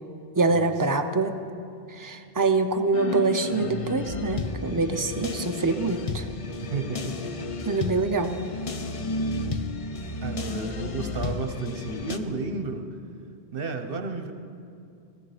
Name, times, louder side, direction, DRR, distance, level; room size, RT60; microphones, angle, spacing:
voice 1, 0.3-1.4 2.0-6.2 7.6-8.3, right 3 dB, 20° right, 6 dB, 0.6 m, -25 dB
sound 1, 2.9-12.2, left 3 dB, 40° left, 0.6 m, -32 dB
voice 2, 6.6-7.3 10.2-12.9 13.5-14.3, right 3 dB, 60° right, 7 dB, 1.1 m, -32 dB
16.5 x 14.5 x 5.0 m, 2.4 s
omnidirectional pair, 1.1 m